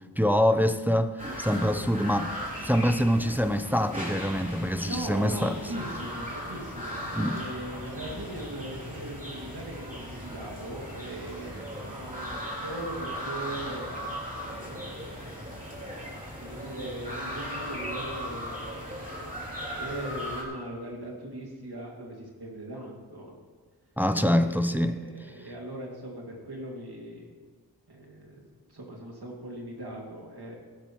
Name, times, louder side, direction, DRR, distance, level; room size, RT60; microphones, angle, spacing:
voice 1, 0.2-1.1 1.4-5.5 7.1-7.4 24.0-25.0, equal, 5° right, 9 dB, 0.6 m, -25 dB
sound 1, 1.2-20.4, equal, 20° right, 3.1 m, -37 dB
voice 2, 1.2-1.9 4.8-13.8 14.4-15.5 16.4-18.9 19.7-23.4 24.2-27.3 27.9-30.6, right 1 dB, 75° right, -1 dB, 2.4 m, -40 dB
15.0 x 12.5 x 3.1 m, 1.5 s
wide cardioid pair, 50°, 39 cm